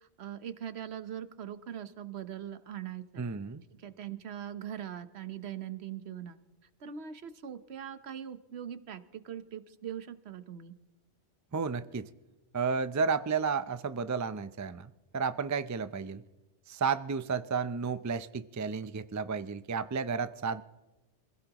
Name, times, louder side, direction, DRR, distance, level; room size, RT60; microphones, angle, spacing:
voice 1, 0.2-3.3 3.8-6.4 6.8-10.7, right 9 dB, 70° right, 11 dB, 1.2 m, -41 dB
voice 2, 3.2-3.6 11.5-12.1 12.5-16.2 16.7-20.6, right 5 dB, 30° right, 12 dB, 0.3 m, -32 dB
26.5 x 16.5 x 3.0 m, 1.0 s
omnidirectional pair, 1.1 m